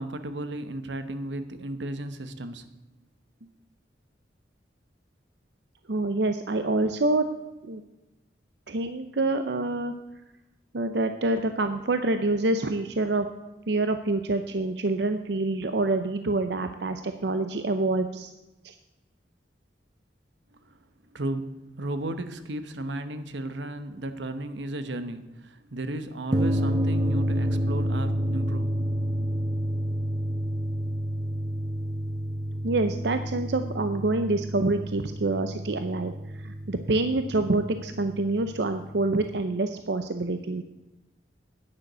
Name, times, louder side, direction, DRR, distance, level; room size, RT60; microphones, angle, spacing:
voice 1, 0.0-2.7 3.4-3.5 20.7-20.8 21.1-28.7 29.2-29.3, right 1 dB, 90° right, 10 dB, 1.0 m, -34 dB
voice 2, 5.9-7.3 7.6-7.8 8.7-9.9 10.7-13.3 13.7-18.3 18.6-18.7 32.6-40.6, right 2 dB, 70° right, 8 dB, 0.7 m, -26 dB
sound 1, 26.3-39.2, equal, 25° right, 0.6 m, -30 dB
10.5 x 9.8 x 6.8 m, 1.0 s
head